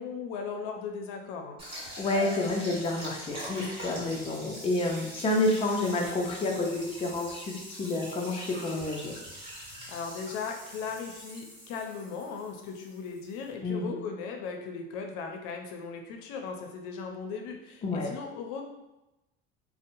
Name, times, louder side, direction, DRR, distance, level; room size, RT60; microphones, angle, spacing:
voice 1, 0.0-1.6 9.9-18.6, left 5 dB, 75° left, 3 dB, 0.5 m, -37 dB
sound 1, 1.6-13.5, equal, 20° right, 1.2 m, -43 dB
voice 2, 1.7-9.2 13.6-14.0 17.8-18.1, left 2 dB, 20° left, 0 dB, 0.4 m, -29 dB
2.7 x 2.1 x 2.6 m, 0.97 s
cardioid pair, 115°, 29 cm